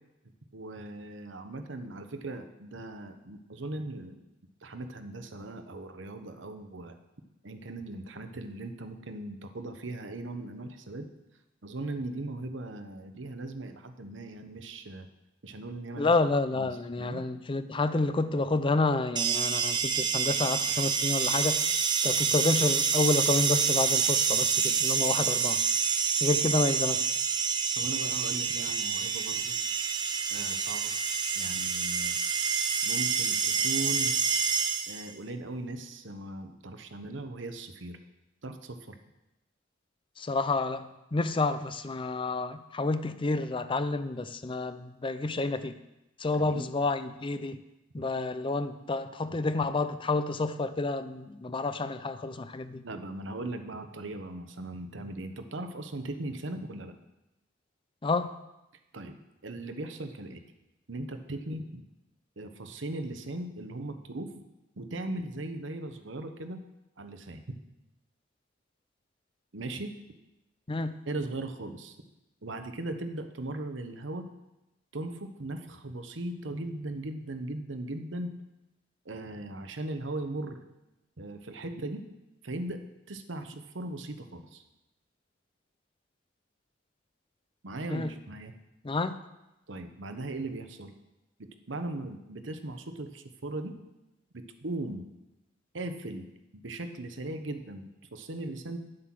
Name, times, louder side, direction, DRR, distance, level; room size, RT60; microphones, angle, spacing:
voice 1, 0.5-4.2 4.6-7.0 7.4-11.1 11.6-15.1 15.4-16.2 16.5-16.7 17.0-17.2 27.8-29.6 30.3-30.9 31.3-32.2 32.8-34.1 34.9-38.0 38.4-39.0 46.4-46.6 52.8-57.0 58.9-60.4 60.9-61.8 62.4-64.4 64.8-66.6 67.0-67.6 69.5-69.9 71.0-72.0 72.4-74.3 74.9-78.3 79.0-80.6 81.2-82.0 82.4-82.8 83.1-84.6 87.6-88.5 89.7-90.9 91.4-93.8 94.3-95.0 95.7-96.3 96.5-98.8, right 2 dB, 75° right, 7 dB, 1.0 m, -38 dB
voice 2, 16.0-21.6 22.0-25.6 26.2-27.2 40.2-45.8 46.2-47.6 47.9-52.8 58.0-58.3 70.7-71.0 87.9-88.1 88.8-89.2, left 3 dB, 25° left, 12 dB, 0.5 m, -29 dB
sound 1, 19.2-35.1, right 6 dB, 25° right, 0.7 m, -27 dB
10.0 x 7.7 x 6.1 m, 0.95 s
head